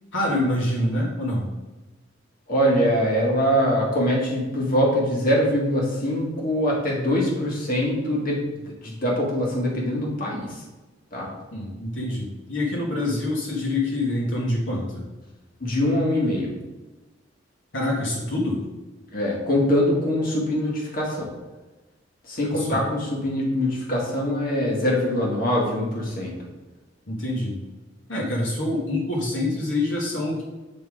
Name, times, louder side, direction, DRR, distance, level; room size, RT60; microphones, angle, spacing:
voice 1, 0.1-1.5 11.5-15.0 17.7-18.6 22.5-22.8 27.1-27.6 28.1-30.4, left 1 dB, 80° left, -3 dB, 1.7 m, -26 dB
voice 2, 2.5-10.6 11.1-11.3 15.6-16.5 19.1-21.3 22.2-26.3, equal, 50° left, -3 dB, 1.9 m, -23 dB
8.7 x 3.7 x 4.9 m, 1.2 s
head